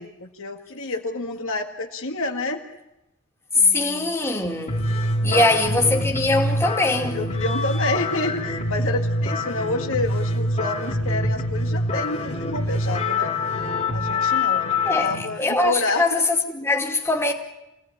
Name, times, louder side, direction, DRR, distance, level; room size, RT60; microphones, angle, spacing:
voice 1, 0.0-2.6 3.5-4.1 5.2-5.5 7.1-13.3 13.9-16.2, left 2 dB, 65° left, 1.9 m, -29 dB
voice 2, 3.5-4.9 5.2-7.3 14.8-17.3, left 2 dB, 10° left, 2.4 m, -22 dB
sound 1, 4.7-15.2, left 2 dB, 30° left, 2.8 m, -25 dB
24.5 x 17.5 x 8.7 m
head